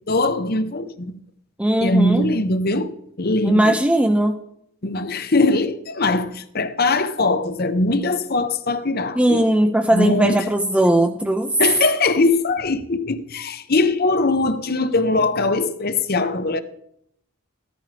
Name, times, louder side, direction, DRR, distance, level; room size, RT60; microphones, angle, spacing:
voice 1, 0.1-1.2 1.8-2.9 3.2-3.8 4.8-9.5 9.9-10.4 11.6-16.6, left 2 dB, 45° left, 0.9 m, -21 dB
voice 2, 1.6-2.3 3.4-4.4 9.2-11.5, right 1 dB, 5° right, 0.6 m, -18 dB
15.0 x 13.0 x 3.4 m
head